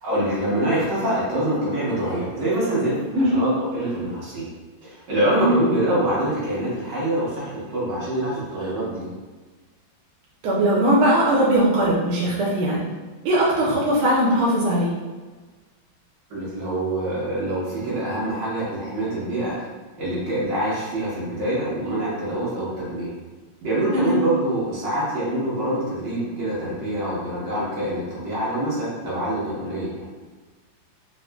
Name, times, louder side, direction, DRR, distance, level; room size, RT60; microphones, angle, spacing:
voice 1, 0.0-4.5 4.8-9.1 16.3-19.7 20.0-23.1 23.6-30.1, right 1 dB, 60° right, -9 dB, 1.8 m, -25 dB
voice 2, 3.1-3.4 5.4-5.6 10.4-12.8 13.2-14.9 23.9-24.2, right 1 dB, 90° right, -5 dB, 1.5 m, -20 dB
4.0 x 2.4 x 2.2 m, 1.3 s
omnidirectional pair, 2.3 m